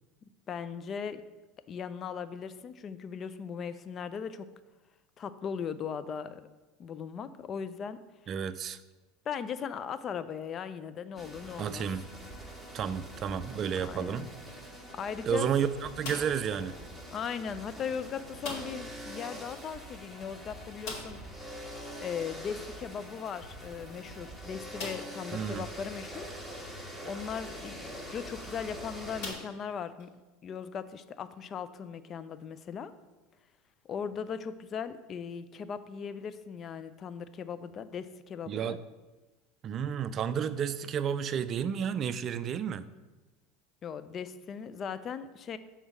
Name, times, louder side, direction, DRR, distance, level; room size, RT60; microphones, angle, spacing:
voice 1, 0.5-1.2 1.7-4.5 5.2-6.4 6.8-8.0 9.3-11.9 13.8-14.3 14.9-15.5 17.1-21.2 22.0-26.3 27.0-30.1 30.4-32.9 33.8-38.8 43.8-45.6, left 7 dB, 40° left, 13 dB, 0.5 m, -38 dB
voice 2, 8.3-8.8 11.6-12.0 12.7-14.3 15.3-16.7 25.3-25.7 38.5-38.8 39.6-42.9, right 8 dB, 40° right, 13 dB, 0.4 m, -31 dB
sound 1, 11.2-29.3, equal, 10° left, 1.7 m, -44 dB
sound 2, 16.0-16.6 18.4-19.0 19.2-19.3 19.6-19.7 20.8-21.4 23.1-23.2 23.8-23.9 24.7-25.3 26.0-26.1 28.1-28.3 29.2-30.1, left 3 dB, 65° left, 2.5 m, -41 dB
6.3 x 3.9 x 6.0 m, 1.2 s
hypercardioid pair, 85°, 0 cm